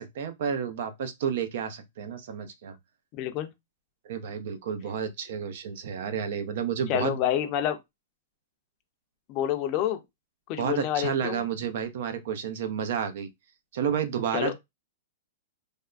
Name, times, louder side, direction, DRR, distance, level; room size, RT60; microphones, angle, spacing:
voice 1, 0.0-2.7 4.0-7.2 10.6-13.3 13.7-14.5, right 7 dB, 60° right, 0.5 m, -31 dB
voice 2, 3.1-3.5 6.9-7.8 9.3-10.0 10.5-11.4 14.3-14.5, left 11 dB, 35° left, 0.5 m, -28 dB
3.3 x 2.1 x 2.4 m
hypercardioid pair, 150°, 0 cm